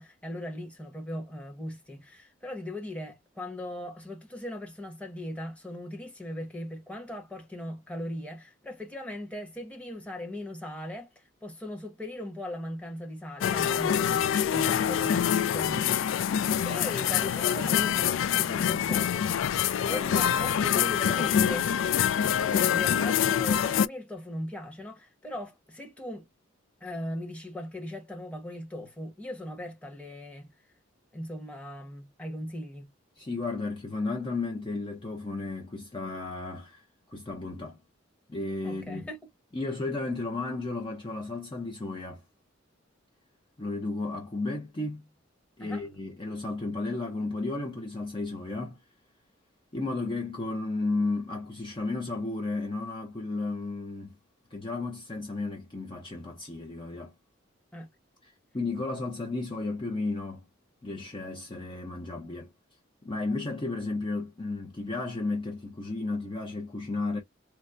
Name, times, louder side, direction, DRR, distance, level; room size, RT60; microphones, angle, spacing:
voice 1, 0.0-19.3 19.9-21.6 22.4-26.3 26.8-30.5 31.1-32.9 38.6-39.2 45.6-45.8 57.7-57.9, left 1 dB, 5° left, 1.0 m, -39 dB
sound 1, 13.4-23.9, left 9 dB, 75° left, 0.3 m, -25 dB
voice 2, 21.0-21.6 33.2-37.8 38.3-39.1 39.5-42.2 43.6-45.1 45.6-48.8 49.7-54.1 54.5-57.1 58.2-60.4 60.8-62.5 63.0-67.2, left 3 dB, 25° left, 0.6 m, -33 dB
4.5 x 2.1 x 2.5 m
head